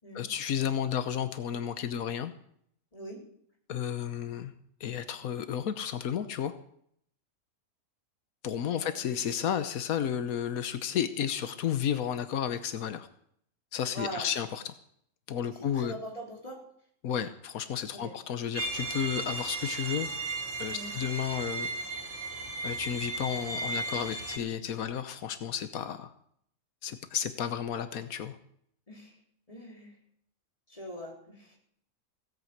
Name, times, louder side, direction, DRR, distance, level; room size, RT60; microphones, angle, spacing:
voice 1, 0.1-2.3 3.7-4.5 4.8-6.5 8.4-13.1 13.7-14.7 15.3-15.9 17.0-20.1 20.6-21.7 22.6-26.1 26.8-28.4, left 9 dB, 90° left, 11 dB, 1.4 m, -32 dB
voice 2, 2.9-3.2 8.6-9.1 13.9-14.3 15.6-16.6 17.9-18.1 20.7-20.9 28.9-29.1 29.5-29.9 30.7-31.5, equal, 25° left, -1 dB, 4.2 m, -42 dB
sound 1, 18.5-24.4, right 3 dB, 60° right, 2.5 m, -35 dB
16.5 x 9.4 x 8.0 m, 0.67 s
omnidirectional pair, 1.4 m